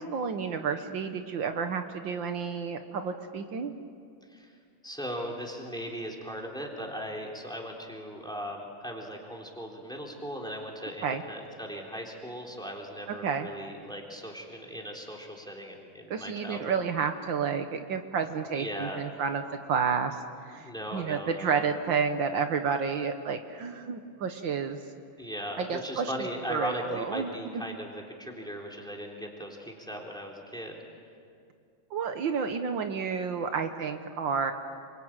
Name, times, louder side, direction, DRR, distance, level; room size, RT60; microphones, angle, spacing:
voice 1, 0.0-3.7 11.0-11.2 13.2-13.5 16.1-20.2 20.5-24.8 25.6-26.1 26.5-27.6 31.9-34.5, right 6 dB, 75° right, 7 dB, 1.8 m, -30 dB
voice 2, 4.8-16.8 18.5-19.0 20.6-21.7 25.2-30.8, equal, ahead, 0 dB, 3.6 m, -38 dB
27.5 x 23.5 x 9.1 m, 2.3 s
omnidirectional pair, 2.1 m